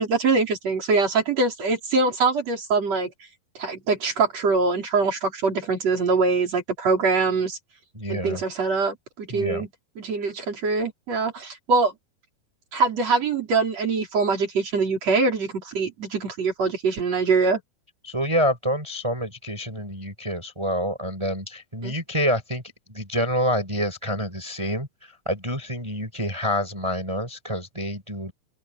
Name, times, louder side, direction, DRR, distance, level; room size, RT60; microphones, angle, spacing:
voice 1, 0.0-3.1 3.6-7.6 8.1-9.7 10.0-11.9 12.7-17.6 21.8-21.9, right 4 dB, 45° right, 5.8 m, -23 dB
voice 2, 7.9-8.4 9.3-9.6 18.0-22.6 22.9-28.3, equal, 5° right, 7.0 m, -27 dB
open air
omnidirectional pair, 4.2 m